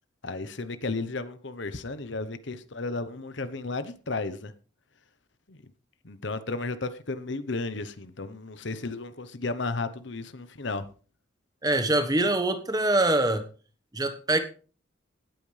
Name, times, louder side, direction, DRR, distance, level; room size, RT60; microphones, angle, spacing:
voice 1, 0.2-4.5 5.5-5.6 6.0-10.9, left 3 dB, 65° left, 1.0 m, -33 dB
voice 2, 11.6-13.5 13.9-14.4, right 2 dB, 20° right, 1.3 m, -24 dB
18.0 x 9.1 x 3.4 m
head